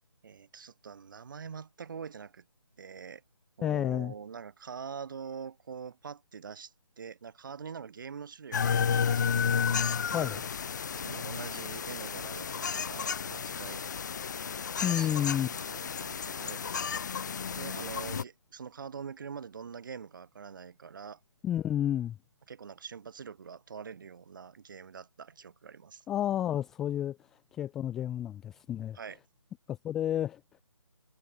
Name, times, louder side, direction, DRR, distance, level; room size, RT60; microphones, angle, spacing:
voice 1, 0.2-2.5 2.8-3.2 3.6-9.4 10.2-10.6 11.0-13.8 14.7-16.9 17.4-21.2 22.5-26.0 28.9-29.2, right 6 dB, 40° right, 7.1 m, -44 dB
voice 2, 3.6-4.1 10.1-10.4 14.8-15.5 21.4-22.2 26.1-27.2 27.5-29.0 29.7-30.4, left 11 dB, ahead, 0.4 m, -30 dB
sound 1, 8.5-18.2, left 7 dB, 35° left, 1.2 m, -32 dB
figure-of-eight pair, 150°, 16 cm